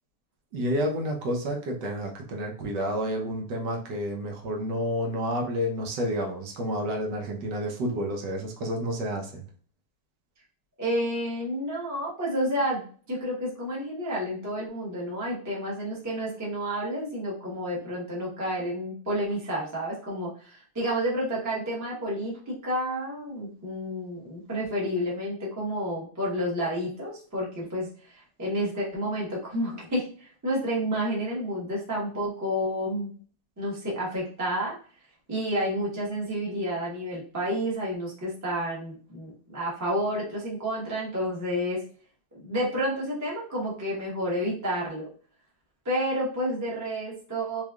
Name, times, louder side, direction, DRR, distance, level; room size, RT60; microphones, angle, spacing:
voice 1, 0.5-9.5, equal, 65° right, 1 dB, 1.4 m, -30 dB
voice 2, 10.8-33.1 33.6-34.8 35.3-41.8 42.4-45.1 45.8-47.6, equal, 10° right, -6 dB, 0.9 m, -30 dB
4.2 x 3.2 x 2.4 m, 0.43 s
omnidirectional pair, 2.2 m